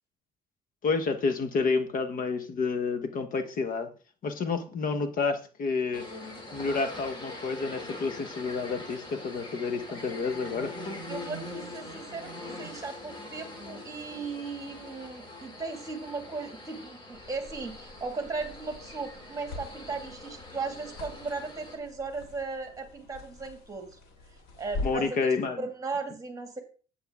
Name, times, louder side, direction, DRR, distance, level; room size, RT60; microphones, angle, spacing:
voice 1, 0.8-3.9 4.2-6.0 6.5-10.7 24.8-25.6, left 4 dB, 55° left, 9 dB, 1.2 m, -29 dB
sound 1, 5.9-21.8, left 2 dB, 30° left, 2.9 m, -43 dB
voice 2, 11.1-24.0 24.6-25.3 25.6-26.6, right 4 dB, 20° right, 5 dB, 2.2 m, -37 dB
sound 2, 17.1-25.2, left 2 dB, 85° left, 3.3 m, -43 dB
9.4 x 8.8 x 3.6 m, 0.38 s
cardioid pair, 110°, 17 cm